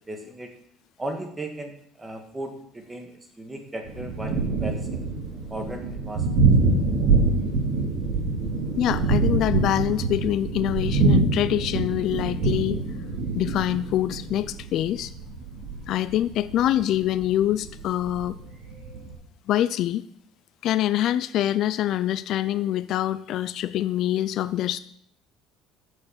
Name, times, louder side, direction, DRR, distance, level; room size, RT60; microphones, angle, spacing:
voice 1, 0.1-0.5 1.0-1.7 2.0-3.1 3.4-5.0 5.5-6.3, right 1 dB, 15° right, 4 dB, 1.9 m, -36 dB
Thunder, 3.8-19.1, right 3 dB, 60° right, 4.2 m, -25 dB
voice 2, 8.8-12.8 13.3-15.1 15.9-18.4 19.5-20.0 20.6-24.8, left 12 dB, 60° left, 14 dB, 0.4 m, -25 dB
8.2 x 6.7 x 7.0 m, 0.68 s
cardioid pair, 120°, 0 cm